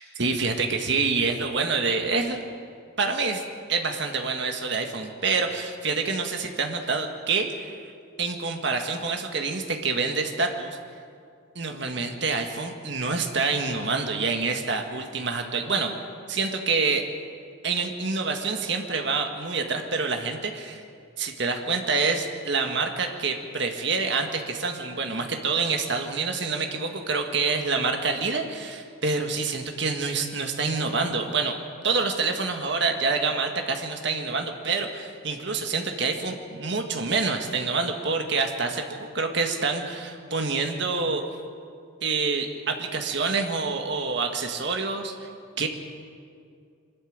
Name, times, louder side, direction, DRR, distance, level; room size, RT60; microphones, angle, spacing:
voice 1, 0.0-2.4 3.0-3.4 3.7-7.8 8.2-10.8 11.5-15.9 16.3-17.0 17.6-20.8 21.2-31.6 31.8-41.2 42.0-45.3 45.6-45.7, right 4 dB, 55° right, 4 dB, 1.8 m, -27 dB
23.5 x 13.0 x 8.8 m, 2.3 s
head